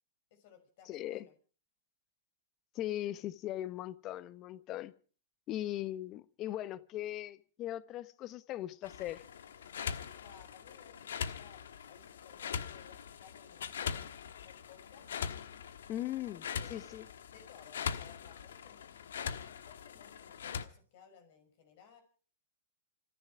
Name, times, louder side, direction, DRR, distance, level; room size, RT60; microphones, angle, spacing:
voice 1, 0.3-1.3 10.2-15.1 16.5-16.9 17.3-19.0 19.4-22.0, left 7 dB, 55° left, 6.0 m, -59 dB
voice 2, 0.9-1.2 2.7-4.9 5.5-9.2 15.9-17.0, left 13 dB, 35° left, 1.0 m, -39 dB
sound 1, 8.8-20.6, left 7 dB, 75° left, 1.3 m, -42 dB
27.0 x 11.0 x 4.8 m
hypercardioid pair, 125°, 0 cm